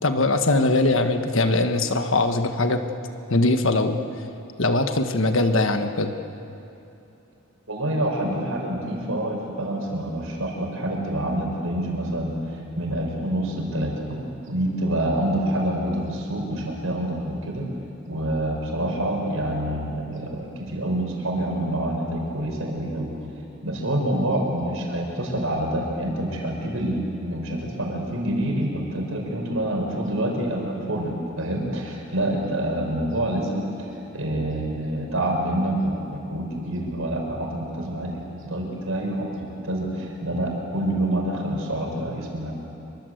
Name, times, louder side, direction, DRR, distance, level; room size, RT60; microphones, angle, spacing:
voice 1, 0.0-2.8 3.3-4.0 4.6-6.1, left 2 dB, 65° left, 7 dB, 1.5 m, -21 dB
voice 2, 7.7-14.2 14.5-17.7 18.1-23.1 23.6-42.5, right 1 dB, 70° right, 1 dB, 5.7 m, -27 dB
26.5 x 24.5 x 8.0 m, 2.8 s
head